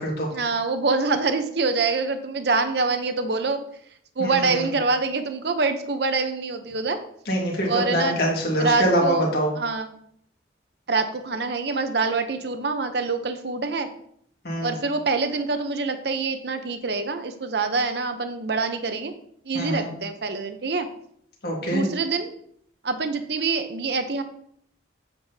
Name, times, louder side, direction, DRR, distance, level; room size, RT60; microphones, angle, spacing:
voice 1, 0.3-3.6 4.2-7.0 7.6-8.2 8.6-9.3 9.6-9.9 10.9-13.9 14.6-19.1 19.5-20.9 21.6-22.3 22.8-24.2, right 4 dB, 60° right, 8 dB, 0.7 m, -25 dB
voice 2, 4.2-4.6 7.3-9.5 14.4-14.7 19.5-19.9 21.4-21.9, equal, 55° left, -2 dB, 1.9 m, -24 dB
7.9 x 7.7 x 2.8 m, 0.66 s
head